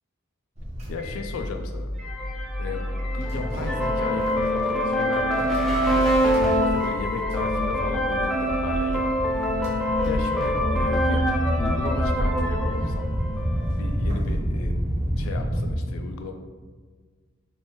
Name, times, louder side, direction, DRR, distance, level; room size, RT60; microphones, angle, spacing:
sound 1, 0.6-15.8, equal, 30° right, 0.7 m, -29 dB
voice 1, 0.9-1.9 2.6-2.9 3.1-6.2 6.7-9.3 10.0-11.2 11.6-13.1 13.7-14.7 15.2-16.3, left 4 dB, 80° left, 5 dB, 0.3 m, -35 dB
sound 2, 2.1-13.9, equal, ahead, 0.4 m, -25 dB
3.2 x 3.1 x 2.9 m, 1.5 s
head